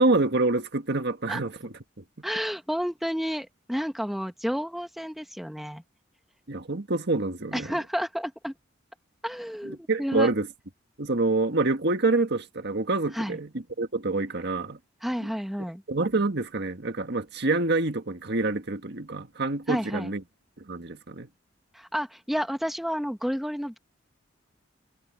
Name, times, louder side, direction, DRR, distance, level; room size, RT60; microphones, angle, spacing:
voice 1, 0.0-2.0 6.5-7.8 9.6-10.5 11.0-14.8 15.2-15.3 15.9-20.2 20.6-21.3, right 2 dB, 60° right, 1.7 m, -27 dB
voice 2, 2.2-5.8 7.5-8.5 9.2-10.3 13.1-13.4 15.0-15.8 19.7-20.1 21.7-23.8, equal, ahead, 1.2 m, -31 dB
head